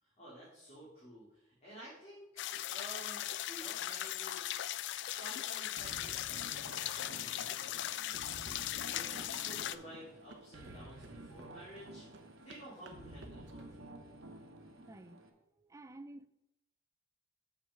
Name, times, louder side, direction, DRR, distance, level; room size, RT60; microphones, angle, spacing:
voice 1, 0.0-4.6 5.0-8.3 8.9-12.0 12.4-13.9, equal, 35° left, 2.6 m, -52 dB
sound 1, 2.4-9.8, left 13 dB, 60° left, 0.3 m, -39 dB
sound 2, 5.8-15.3, right 1 dB, 90° right, 1.1 m, -52 dB
sound 3, 7.0-13.7, right 2 dB, 65° right, 1.0 m, -58 dB
voice 2, 14.8-16.3, right 1 dB, 15° right, 0.4 m, -52 dB
7.2 x 5.7 x 4.8 m
head